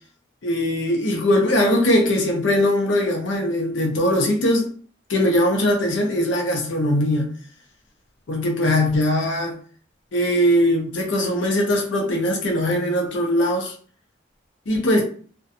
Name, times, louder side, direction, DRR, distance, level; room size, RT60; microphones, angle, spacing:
voice 1, 0.4-4.7 5.1-7.3 8.3-9.6 10.1-13.7 14.7-15.0, left 1 dB, 80° left, 0.6 m, -20 dB
2.5 x 2.2 x 2.6 m
head